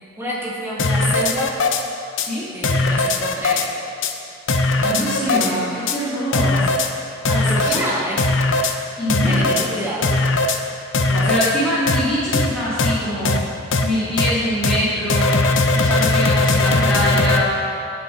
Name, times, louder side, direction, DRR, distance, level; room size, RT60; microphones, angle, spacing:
voice 1, 0.2-1.5 2.5-3.6 4.8-5.8 7.3-8.2 9.3-10.1 16.5-17.4, right 1 dB, 10° right, -6 dB, 2.1 m, -29 dB
sound 1, 0.8-1.8 2.2-2.3 2.6-3.7 4.0-4.1 4.5-5.5 5.9-6.0 6.3-6.9 7.3-7.8 8.2-8.7 9.1-9.7 10.0-10.6 10.9-11.5 11.9-12.0 12.3-12.5 12.8-12.9 13.3-13.4 13.7-13.8 14.2-14.3 14.6-14.8 15.1-17.4, left 3 dB, 75° left, 0.8 m, -19 dB
voice 2, 4.8-6.6 7.3-7.9 9.0-9.7 11.1-13.4 13.8-15.4 15.7-17.6, equal, 5° left, -13 dB, 2.8 m, -23 dB
11.0 x 9.9 x 4.0 m, 2.5 s
head